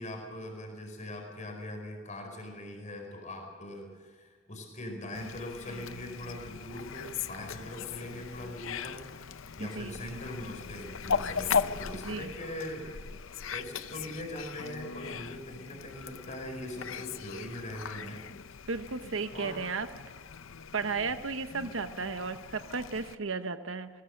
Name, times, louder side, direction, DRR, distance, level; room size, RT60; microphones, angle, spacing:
voice 1, 0.0-9.3 9.6-12.9 13.5-18.2 19.3-19.6 21.1-21.2, left 1 dB, 35° left, 2 dB, 4.7 m, -41 dB
Fowl, 5.1-23.1, left 6 dB, 70° left, 0.6 m, -38 dB
voice 2, 9.6-10.0 12.0-12.3 18.7-19.9 20.7-23.9, right 4 dB, 70° right, 10 dB, 1.0 m, -34 dB
21.0 x 19.5 x 6.6 m, 1.5 s
head